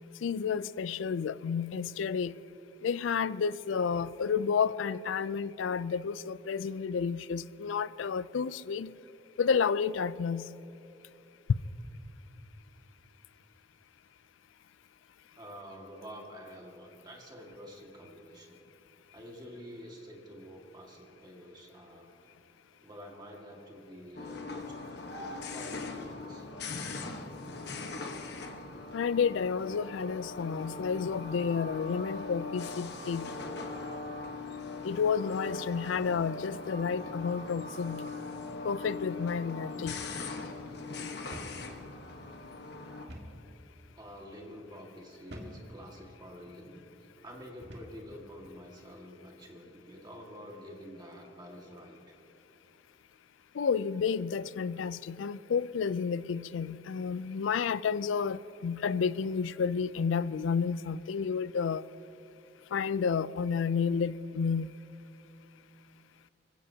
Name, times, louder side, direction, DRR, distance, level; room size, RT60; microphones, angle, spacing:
voice 1, 0.2-2.3 2.8-8.9 9.4-10.5 28.9-33.3 34.8-38.0 38.6-40.0 53.6-61.8 62.7-64.7, left 6 dB, 85° left, 0.4 m, -31 dB
voice 2, 15.4-18.6 19.1-22.1 22.8-26.5 44.0-46.8 47.2-52.0, equal, 20° right, 1.8 m, -48 dB
sound 1, 24.2-43.1, left 3 dB, 60° left, 1.1 m, -40 dB
sound 2, 39.9-40.2 40.5-40.6 41.3-41.6 43.1-43.4 44.1-44.3 45.3-45.6 46.4-46.6 47.6-48.0, equal, 60° right, 1.8 m, -46 dB
25.0 x 15.5 x 2.8 m
head